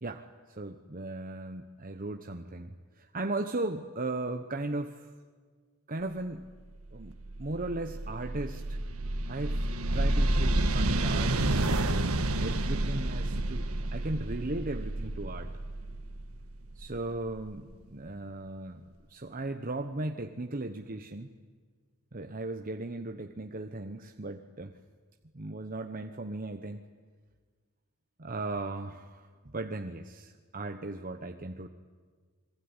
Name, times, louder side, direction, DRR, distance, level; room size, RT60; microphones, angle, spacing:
voice 1, 0.0-5.1 5.9-6.5 6.9-8.8 9.3-9.7 9.9-15.5 16.7-18.8 19.1-21.3 22.1-24.8 25.3-26.8 28.2-31.7, right 2 dB, 40° right, 5 dB, 1.1 m, -37 dB
sound 1, 6.8-17.5, right 1 dB, 80° right, 1.7 m, -30 dB
27.5 x 22.0 x 9.8 m, 1.5 s
head